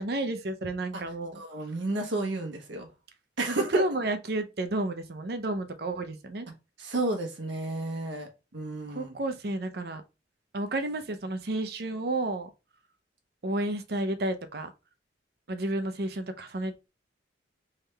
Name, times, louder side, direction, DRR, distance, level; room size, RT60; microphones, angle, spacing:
voice 1, 0.0-1.4 3.5-6.5 8.9-10.0 10.5-12.5 13.4-14.7 15.5-16.9, right 2 dB, 55° right, 0.6 m, -31 dB
voice 2, 1.3-2.9 3.4-3.9 6.5-9.2, right 2 dB, 85° right, 1.2 m, -32 dB
3.5 x 3.3 x 3.3 m
head